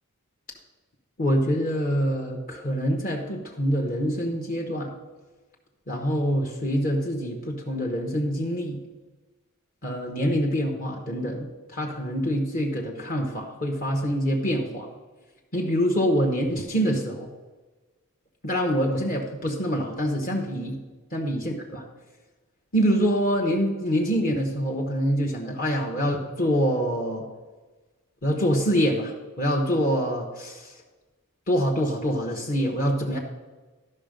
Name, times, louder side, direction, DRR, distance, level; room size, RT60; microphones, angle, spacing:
voice 1, 1.2-4.9 5.9-8.8 9.8-14.9 15.5-17.3 18.4-20.8 21.1-21.8 22.7-27.2 28.2-30.7 31.5-33.2, equal, 40° left, 0 dB, 1.0 m, -25 dB
12.0 x 5.5 x 5.1 m, 1.3 s
head